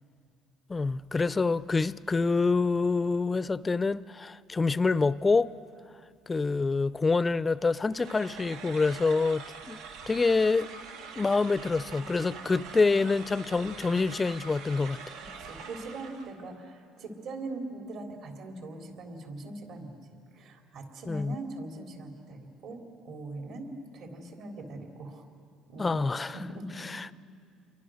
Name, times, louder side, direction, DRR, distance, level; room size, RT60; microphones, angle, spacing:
voice 1, 0.7-5.5 6.3-9.8 10.1-10.7 11.2-15.0 21.1-21.3 25.8-26.3 26.9-27.1, left 4 dB, 20° left, 0.5 m, -26 dB
sound 1, 7.9-16.4, right 5 dB, 85° right, 1.8 m, -44 dB
voice 2, 12.3-12.7 15.4-25.2 25.7-26.0 26.3-26.9, right 2 dB, 65° right, 3.6 m, -41 dB
28.5 x 23.5 x 6.5 m
cardioid pair, 100°, 0 cm